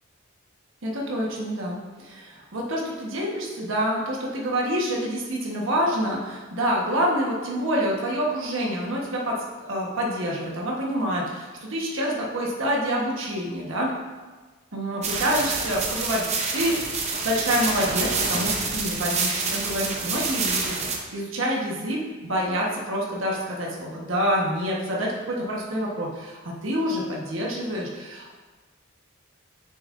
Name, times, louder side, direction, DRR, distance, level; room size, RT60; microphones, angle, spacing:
voice 1, 0.8-13.9 14.7-16.3 16.5-28.3, equal, 65° right, -3 dB, 1.2 m, -27 dB
sound 1, 15.0-21.0, right 4 dB, 30° right, 0.7 m, -27 dB
7.2 x 6.5 x 2.6 m, 1.3 s
head